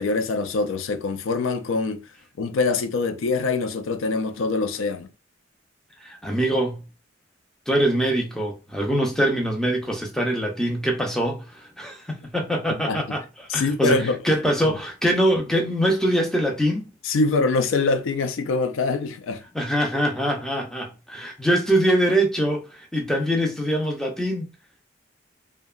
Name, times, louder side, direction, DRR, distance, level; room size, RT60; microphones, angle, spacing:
voice 1, 0.0-2.0 2.4-5.1 12.9-13.0 13.5-14.2 17.0-19.4, left 3 dB, 85° left, 0.4 m, -24 dB
voice 2, 6.0-6.8 7.7-16.9 19.5-24.5, right 1 dB, 5° left, 0.4 m, -23 dB
2.8 x 2.1 x 2.3 m
head